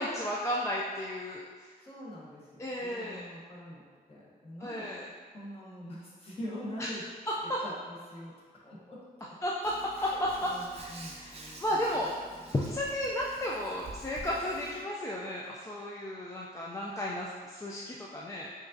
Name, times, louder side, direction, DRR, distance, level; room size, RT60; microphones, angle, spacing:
voice 1, 0.0-1.7 2.6-3.3 4.6-5.1 6.8-6.9 7.5-7.6 9.4-18.5, left 1 dB, 20° left, -4 dB, 0.3 m, -34 dB
voice 2, 1.8-4.9 5.3-7.0 7.6-8.3 8.6-9.0 10.0-12.1, equal, 35° left, -6 dB, 1.1 m, -44 dB
Hands, 9.6-14.8, right 2 dB, 40° right, 0.5 m, -48 dB
5.0 x 2.5 x 2.6 m, 1.5 s
cardioid pair, 110°, 16 cm